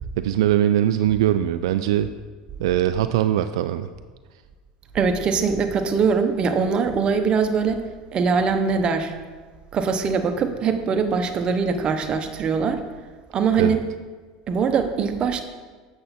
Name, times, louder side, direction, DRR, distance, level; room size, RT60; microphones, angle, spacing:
voice 1, 0.2-2.1 2.6-3.9 13.6-13.8, right 12 dB, 80° right, 11 dB, 0.3 m, -21 dB
voice 2, 4.9-7.8 8.1-9.1 9.7-12.8 13.3-13.8 14.5-15.4, right 5 dB, 35° right, 7 dB, 0.9 m, -22 dB
7.6 x 7.0 x 4.2 m, 1.4 s
supercardioid pair, 100°, 3 cm